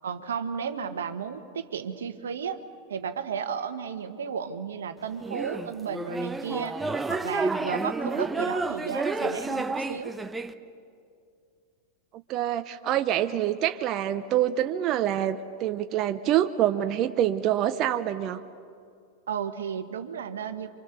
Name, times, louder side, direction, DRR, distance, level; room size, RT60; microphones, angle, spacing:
voice 1, 0.0-2.6 2.9-6.8 7.1-10.1 19.3-20.7, right 7 dB, 75° right, 9 dB, 1.4 m, -33 dB
sound 1, 5.2-10.5, right 3 dB, 10° right, 1.1 m, -30 dB
voice 2, 12.3-18.4, right 11 dB, 40° right, 8 dB, 0.9 m, -26 dB
28.5 x 25.5 x 6.9 m, 2.3 s
hypercardioid pair, 95°, 0 cm